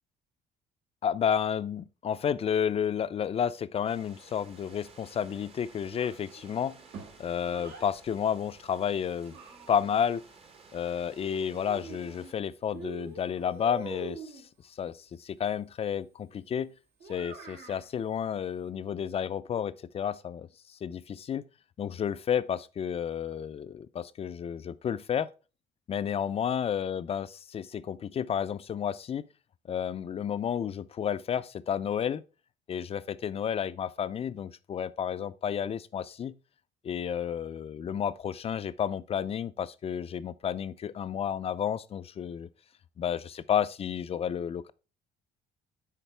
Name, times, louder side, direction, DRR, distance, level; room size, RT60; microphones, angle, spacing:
voice 1, 1.0-6.8 7.2-9.3 9.7-10.2 10.7-14.4 14.7-16.7 17.1-20.5 20.8-21.4 21.8-25.3 25.9-29.3 29.7-32.2 32.7-36.3 36.8-42.5 43.0-44.7, left 8 dB, 35° left, 0.5 m, -31 dB
sound 1, 3.9-12.3, right 4 dB, 35° right, 1.1 m, -55 dB
Child speech kid speaking, 5.9-7.9 8.8-10.1 11.2-12.4 12.7-14.5 17.0-17.9, right 4 dB, 75° right, 2.7 m, -45 dB
10.0 x 4.0 x 3.3 m
cardioid pair, 110°, 17 cm